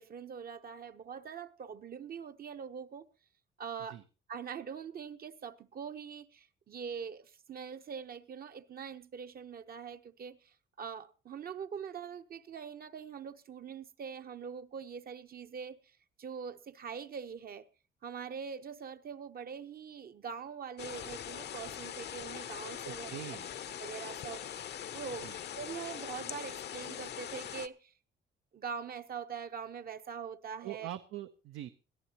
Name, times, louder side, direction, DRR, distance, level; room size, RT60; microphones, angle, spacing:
voice 1, 0.0-3.1 3.6-4.0 4.3-17.6 18.0-23.1 23.8-24.4 24.9-27.9 28.5-30.9, right 7 dB, 50° right, 0.9 m, -43 dB
sound 1, 20.8-27.7, left 9 dB, 55° left, 0.7 m, -42 dB
voice 2, 22.8-23.5 25.2-25.4 30.6-31.7, right 13 dB, 85° right, 0.7 m, -43 dB
21.0 x 13.5 x 2.9 m
cardioid pair, 90°, 20 cm